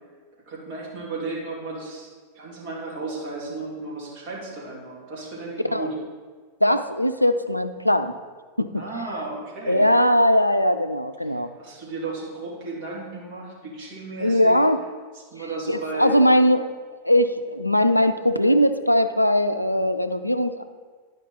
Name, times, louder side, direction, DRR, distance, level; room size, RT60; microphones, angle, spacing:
voice 1, 0.5-6.0 8.8-9.9 11.6-14.6 15.3-16.2, right 3 dB, 45° right, -4 dB, 2.4 m, -34 dB
voice 2, 6.6-8.1 8.6-8.8 9.7-11.5 14.2-14.8 15.7-16.7 17.0-20.6, equal, 90° left, 10 dB, 0.4 m, -20 dB
11.0 x 5.2 x 3.9 m, 1.5 s
figure-of-eight pair, 90°, 0 cm